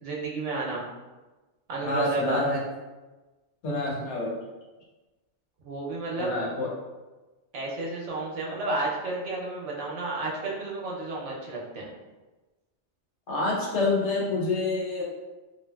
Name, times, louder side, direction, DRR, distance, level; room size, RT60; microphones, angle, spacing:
voice 1, 0.0-0.8 1.7-2.4 5.6-6.3 7.5-11.9, right 2 dB, 80° right, -4 dB, 1.0 m, -31 dB
voice 2, 1.8-2.6 3.6-4.3 6.2-6.7 13.3-15.0, left 2 dB, 70° left, -3 dB, 1.0 m, -27 dB
3.2 x 2.4 x 2.2 m, 1.2 s
omnidirectional pair, 1.2 m